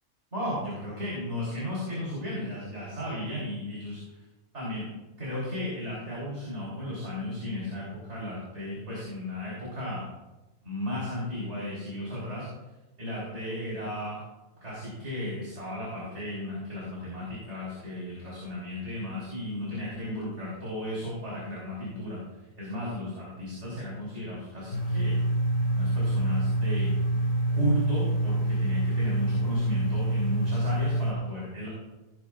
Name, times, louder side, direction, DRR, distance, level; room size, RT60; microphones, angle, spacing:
voice 1, 0.3-4.2 4.5-4.9 5.2-10.0 10.6-12.5 13.0-14.2 14.6-22.2 22.6-25.2 25.7-26.9 27.5-31.7, left 1 dB, 55° right, -7 dB, 4.7 m, -34 dB
sound 1, 24.7-31.1, right 1 dB, 65° left, 2.3 m, -26 dB
18.5 x 11.0 x 2.5 m, 1.1 s
omnidirectional pair, 1.5 m